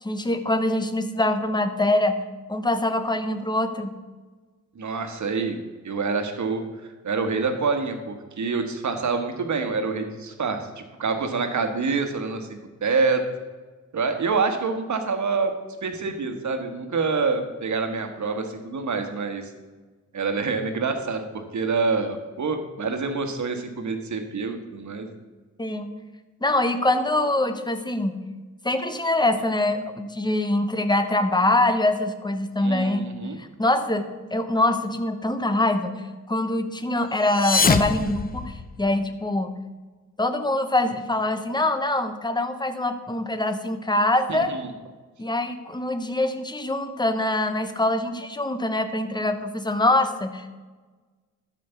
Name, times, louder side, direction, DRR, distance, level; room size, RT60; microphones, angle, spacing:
voice 1, 0.0-2.2 2.5-4.0 25.6-25.9 26.4-28.2 28.6-33.1 33.4-35.9 36.3-39.5 40.2-44.5 45.2-50.5, left 1 dB, 15° left, 8 dB, 1.0 m, -24 dB
voice 2, 4.7-5.6 5.8-6.6 7.0-12.5 12.8-13.2 13.9-15.5 15.8-19.5 20.1-25.0 32.6-33.4 44.3-44.7, right 4 dB, 70° right, 6 dB, 1.5 m, -26 dB
sound 1, 37.2-39.1, left 4 dB, 30° left, 0.6 m, -24 dB
12.5 x 5.2 x 7.0 m, 1.3 s
wide cardioid pair, 100°, 30 cm